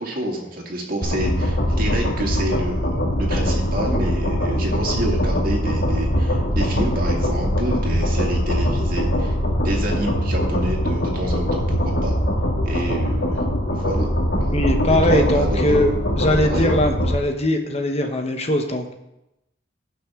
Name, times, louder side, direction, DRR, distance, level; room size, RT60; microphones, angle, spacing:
voice 1, 0.0-9.4 9.6-12.2 12.6-13.4 13.7-14.5 14.9-15.9 16.4-16.7, right 1 dB, 50° right, -1 dB, 2.3 m, -28 dB
sound 1, 1.0-17.2, equal, 65° left, 1.9 m, -22 dB
voice 2, 14.5-15.9 16.2-18.9, left 1 dB, 35° left, 5 dB, 1.0 m, -21 dB
17.0 x 6.0 x 3.7 m, 0.88 s
head